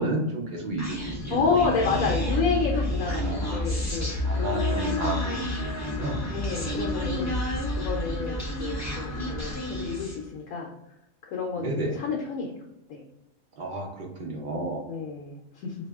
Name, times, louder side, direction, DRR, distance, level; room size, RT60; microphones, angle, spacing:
voice 1, 0.0-1.4 1.9-2.1 3.1-3.4 4.2-6.2 11.6-12.0 13.6-14.8, right 2 dB, 40° right, -2 dB, 0.9 m, -31 dB
Human voice, 0.8-10.3, left 1 dB, 15° left, 0.7 m, -29 dB
voice 2, 1.3-4.9 5.2-5.4 6.3-7.4 7.7-10.7 11.3-12.5 12.9-13.0 14.9-15.7, left 5 dB, 80° left, -1 dB, 1.1 m, -30 dB
2.8 x 2.7 x 3.4 m, 0.86 s
omnidirectional pair, 1.4 m